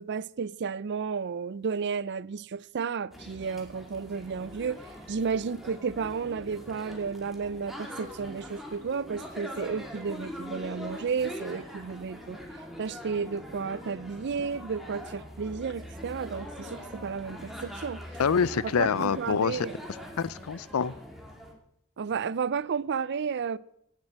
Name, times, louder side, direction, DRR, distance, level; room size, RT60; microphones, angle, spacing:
voice 1, 0.0-4.8 5.1-12.4 12.8-18.0 18.6-19.7 22.0-23.6, right 5 dB, 55° right, 0.4 m, -32 dB
sound 1, 3.1-21.5, left 1 dB, ahead, 2.4 m, -43 dB
voice 2, 18.2-19.7 20.2-21.0, left 6 dB, 85° left, 0.5 m, -26 dB
17.5 x 7.5 x 7.5 m
head